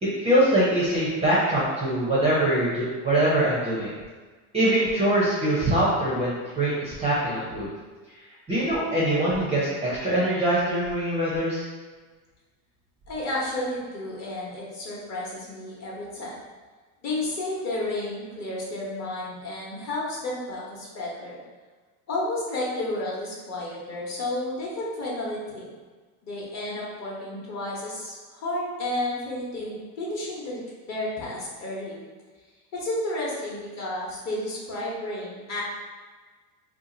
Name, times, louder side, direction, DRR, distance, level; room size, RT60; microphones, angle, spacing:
voice 1, 0.2-3.9 4.5-7.7 8.5-11.6, right 1 dB, 15° right, -8 dB, 0.6 m, -23 dB
voice 2, 13.1-16.4 17.0-21.4 22.1-25.8 26.2-32.0 32.7-35.6, left 1 dB, 35° left, -5 dB, 0.9 m, -32 dB
2.8 x 2.3 x 3.8 m, 1.4 s
supercardioid pair, 135°, 46 cm